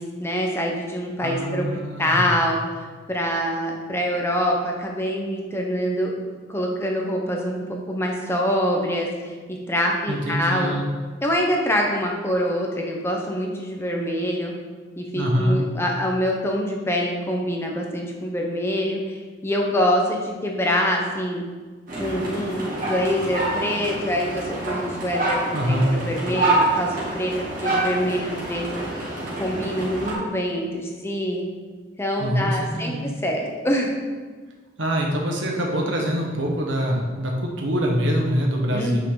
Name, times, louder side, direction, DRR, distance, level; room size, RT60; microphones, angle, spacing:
voice 1, 0.0-1.7 2.0-10.8 11.2-14.5 15.0-21.4 22.0-27.3 27.6-28.8 29.4-31.4 32.0-33.9 38.7-39.0, equal, 15° left, 0 dB, 0.9 m, -25 dB
voice 2, 1.2-2.3 10.1-10.9 15.1-15.6 25.5-25.9 32.2-33.1 34.8-39.0, equal, 75° right, 0 dB, 1.4 m, -24 dB
sound 1, 21.9-30.1, right 2 dB, 45° right, 2.3 m, -26 dB
9.1 x 5.7 x 4.0 m, 1.4 s
head